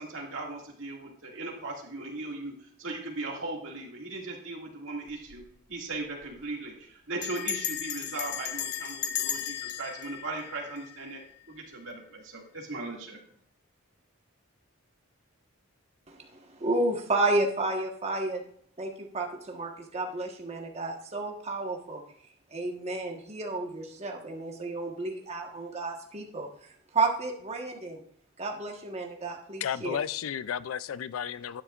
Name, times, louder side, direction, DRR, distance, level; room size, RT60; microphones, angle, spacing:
voice 1, 0.0-5.4 5.7-11.2 11.5-13.2, right 2 dB, 70° right, -1 dB, 2.2 m, -38 dB
Bell, 5.1-5.5 5.7-5.8 6.0-6.4 7.2-11.3, left 10 dB, 55° left, 0.8 m, -35 dB
voice 2, 16.1-18.4 18.8-22.0 22.5-26.5 26.9-28.0 28.4-30.0, right 2 dB, 30° right, 1 dB, 1.4 m, -31 dB
voice 3, 29.6-31.6, left 8 dB, 90° left, 17 dB, 0.4 m, -33 dB
11.5 x 9.9 x 2.5 m, 0.62 s
head